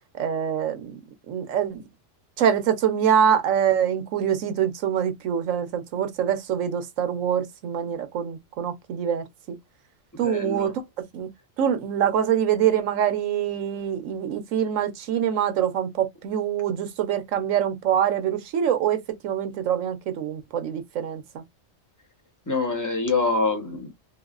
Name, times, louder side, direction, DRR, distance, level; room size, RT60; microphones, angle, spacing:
voice 1, 0.2-1.0 1.3-1.8 2.4-9.6 10.2-10.7 11.1-11.3 11.6-21.4, right 9 dB, 80° right, 1.1 m, -25 dB
voice 2, 10.2-10.7 22.5-23.9, left 3 dB, 15° left, 0.8 m, -25 dB
3.8 x 2.0 x 2.4 m
omnidirectional pair, 1.4 m